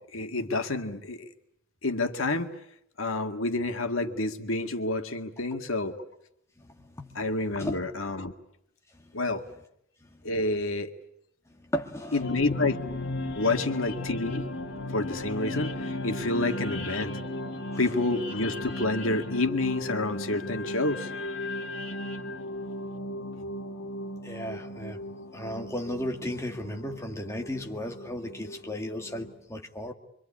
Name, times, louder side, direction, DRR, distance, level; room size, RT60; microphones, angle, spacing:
voice 1, 0.1-1.3 1.8-2.5 3.0-6.0 7.2-8.3 9.1-9.4 10.2-10.9 12.1-12.8 13.4-14.5 14.9-17.2 17.8-21.1, left 2 dB, 90° left, 2.0 m, -29 dB
voice 2, 6.6-7.2 7.6-7.8 11.7-12.2 24.2-25.0 25.3-29.9, left 1 dB, 15° left, 1.9 m, -35 dB
sound 1, 12.2-29.3, left 1 dB, 65° left, 2.8 m, -36 dB
25.5 x 25.0 x 8.5 m
head